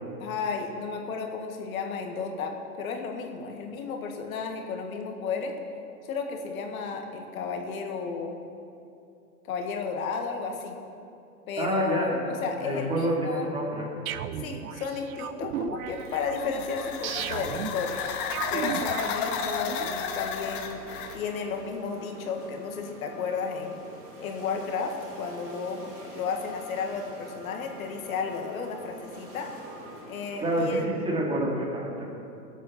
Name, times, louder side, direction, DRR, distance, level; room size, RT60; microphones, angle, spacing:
voice 1, 0.2-5.6 6.0-8.4 9.4-10.8 11.5-13.5 14.4-18.0 18.5-20.8 21.1-23.8 24.2-29.6 30.1-31.1, left 5 dB, 60° left, 3 dB, 1.8 m, -33 dB
voice 2, 11.6-12.2 12.6-13.9 30.4-32.0, right 1 dB, 10° right, -3 dB, 2.2 m, -28 dB
sound 1, 14.1-19.9, right 9 dB, 65° right, 0.7 m, -36 dB
sound 2, 15.9-21.2, left 7 dB, 35° left, 0.9 m, -33 dB
sound 3, 16.9-30.6, right 2 dB, 30° right, 2.9 m, -47 dB
20.5 x 8.3 x 4.2 m, 2.7 s
hypercardioid pair, 140°, 46 cm